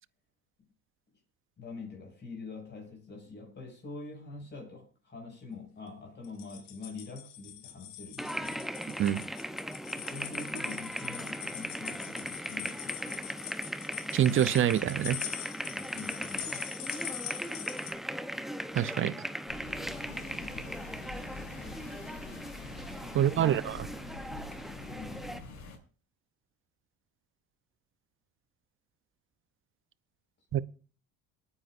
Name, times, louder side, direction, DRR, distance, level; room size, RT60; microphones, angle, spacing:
voice 1, 1.6-8.7 10.0-13.4 15.7-16.7 23.1-23.6 23.8-23.9 24.8-25.4 30.5-30.6, left 4 dB, 35° left, 6.2 m, -45 dB
sound 1, 6.2-17.9, left 10 dB, 85° left, 2.4 m, -43 dB
sound 2, 8.2-25.4, equal, ahead, 0.7 m, -38 dB
voice 2, 14.1-15.2 18.7-19.2 23.1-23.7 30.5-30.6, right 11 dB, 40° right, 0.7 m, -25 dB
sound 3, 19.5-25.8, left 3 dB, 65° left, 7.0 m, -45 dB
27.0 x 9.7 x 2.6 m
supercardioid pair, 100°, 32 cm